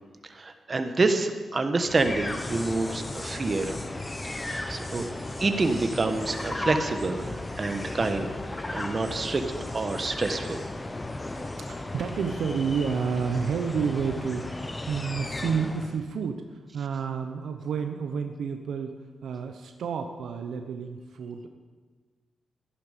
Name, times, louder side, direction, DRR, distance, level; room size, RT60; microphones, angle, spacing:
voice 1, 0.3-3.8 4.2-5.1 5.4-8.3 8.7-9.4 9.7-10.6, right 3 dB, 45° right, 7 dB, 1.3 m, -27 dB
sound 1, 1.8-16.0, left 2 dB, 25° left, 1.1 m, -35 dB
voice 2, 11.2-19.0 19.2-21.5, right 6 dB, 80° right, 6 dB, 0.8 m, -31 dB
13.0 x 11.0 x 5.2 m, 1.5 s
cardioid pair, 55°, 0 cm